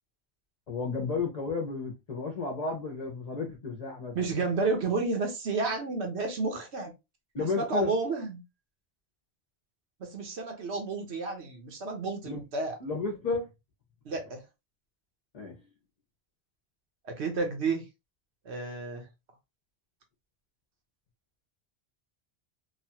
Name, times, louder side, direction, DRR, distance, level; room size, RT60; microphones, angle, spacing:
voice 1, 0.7-4.3 7.3-7.9 12.2-12.4 12.8-13.5 15.3-15.5, left 4 dB, 45° left, 0.7 m, -32 dB
voice 2, 4.1-6.9 7.6-8.4 10.0-12.8 14.1-14.4 17.0-17.8 18.4-19.1, right 3 dB, 85° right, 1.2 m, -31 dB
3.0 x 2.2 x 2.8 m
omnidirectional pair, 1.1 m